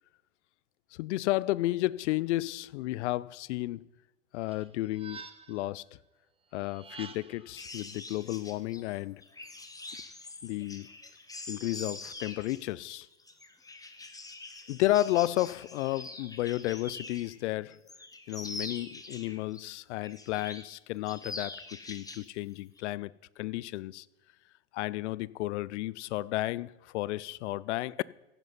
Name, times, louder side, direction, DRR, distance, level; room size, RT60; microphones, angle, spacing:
voice 1, 1.0-3.9 4.3-5.8 6.5-9.2 10.4-10.9 11.5-13.1 14.7-17.8 18.3-24.1 24.7-28.0, left 17 dB, 70° left, 0.5 m, -32 dB
sound 1, 4.5-5.7 6.6-7.5, right 4 dB, 15° right, 1.0 m, -48 dB
sound 2, 7.6-17.4 17.7-19.6 20.0-20.8 21.1-22.3 22.6-22.8, left 3 dB, 10° left, 1.2 m, -44 dB
15.0 x 11.0 x 4.1 m
hypercardioid pair, 95°, 36 cm